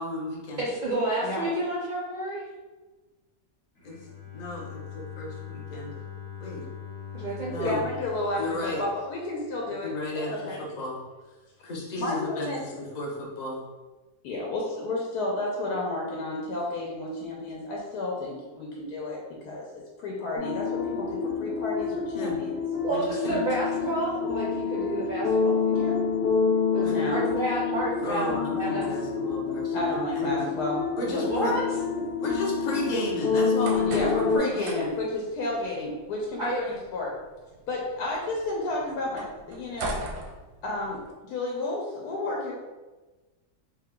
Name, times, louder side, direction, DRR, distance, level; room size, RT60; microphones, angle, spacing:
voice 1, 0.0-0.6 3.8-6.0 6.4-6.6 7.5-7.9 8.4-8.8 9.8-11.0 11.6-13.7 22.1-22.4 22.8-23.4 26.8-27.0 28.0-29.9 30.1-30.5 31.0-31.5 32.2-34.9, left 2 dB, 45° left, -2 dB, 0.5 m, -33 dB
voice 2, 0.6-2.4 7.1-7.7 22.8-25.9 26.7-26.8 27.1-28.9 31.3-31.6 36.4-36.6, right 2 dB, 70° right, -6 dB, 0.4 m, -30 dB
Bowed string instrument, 3.8-9.7, left 9 dB, 30° left, 1.1 m, -42 dB
voice 3, 7.6-10.6 12.0-12.6 14.2-22.5 25.7-26.0 26.9-27.2 29.7-31.5 33.9-37.2 37.7-40.0 40.6-42.5, left 2 dB, 90° left, -3 dB, 1.2 m, -32 dB
sound 1, 20.4-34.4, left 5 dB, 65° left, 0.9 m, -28 dB
sound 2, 33.4-41.1, right 3 dB, 90° right, 1.2 m, -41 dB
3.5 x 2.3 x 3.6 m, 1.2 s
omnidirectional pair, 1.6 m